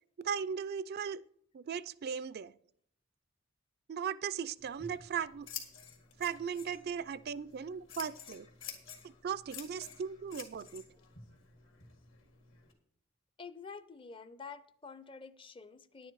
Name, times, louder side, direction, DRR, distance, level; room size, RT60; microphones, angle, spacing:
voice 1, 0.2-1.2 1.5-2.5 3.9-5.5 6.2-8.5 9.2-10.8, right 7 dB, 45° right, 16 dB, 0.3 m, -37 dB
Scissors, 4.6-12.7, left 7 dB, 65° left, 1.9 m, -50 dB
voice 2, 13.4-16.1, left 5 dB, 25° left, 14 dB, 0.5 m, -48 dB
10.5 x 9.2 x 4.6 m, 0.66 s
head